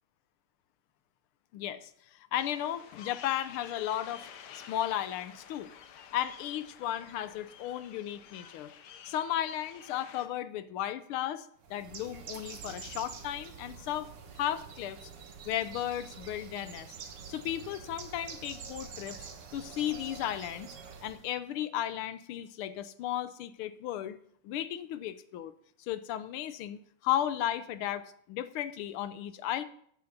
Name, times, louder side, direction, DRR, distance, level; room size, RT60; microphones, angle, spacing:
voice 1, 1.5-4.3 4.7-5.7 6.1-8.7 9.1-14.1 14.4-15.0 15.5-16.9 17.3-19.3 19.5-20.7 21.0-24.2 24.4-25.5 25.8-29.6, left 11 dB, 80° left, 13 dB, 1.6 m, -35 dB
sound 1, 2.3-10.3, left 8 dB, 60° left, 1.2 m, -51 dB
Bird, 11.6-21.3, right 6 dB, 85° right, 2.3 m, -46 dB
13.5 x 7.9 x 4.0 m, 0.66 s
omnidirectional pair, 2.4 m